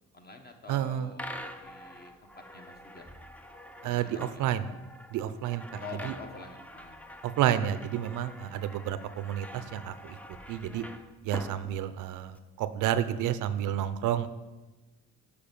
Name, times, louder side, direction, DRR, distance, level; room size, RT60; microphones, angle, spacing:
voice 1, 0.1-3.0 3.8-4.4 5.8-7.0, left 4 dB, 30° left, 5 dB, 1.1 m, -47 dB
voice 2, 0.7-1.1 3.8-4.7 5.1-6.1 7.2-10.2 10.5-10.8 11.2-14.3, right 11 dB, 85° right, 13 dB, 0.5 m, -30 dB
sound 1, 1.1-12.4, equal, 5° left, 0.5 m, -46 dB
6.8 x 4.8 x 5.3 m, 1.1 s
cardioid pair, 90°, 30 cm